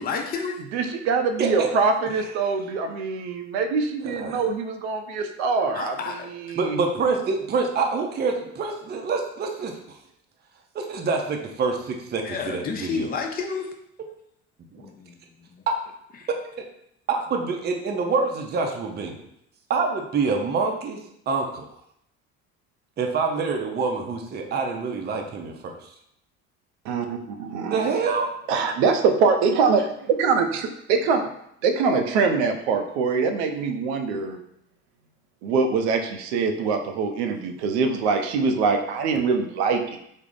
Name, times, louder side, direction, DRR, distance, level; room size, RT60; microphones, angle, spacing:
voice 1, 0.0-0.7 5.7-6.6 12.2-13.7 14.8-15.6 16.2-16.3, left 5 dB, 30° left, 3 dB, 0.5 m, -31 dB
voice 2, 0.7-6.8 26.8-28.0 28.5-31.2 31.6-34.4 35.4-40.0, right 4 dB, 90° right, 6 dB, 0.5 m, -24 dB
voice 3, 1.4-1.7 4.0-4.4 6.6-9.7 10.7-13.1 14.7-14.8 16.6-16.7 17.1-19.2 19.7-21.0 21.3-21.7 23.0-25.8 27.7-28.3, right 4 dB, 30° right, 2 dB, 0.5 m, -26 dB
3.4 x 2.0 x 3.8 m, 0.74 s
supercardioid pair, 80°, 32 cm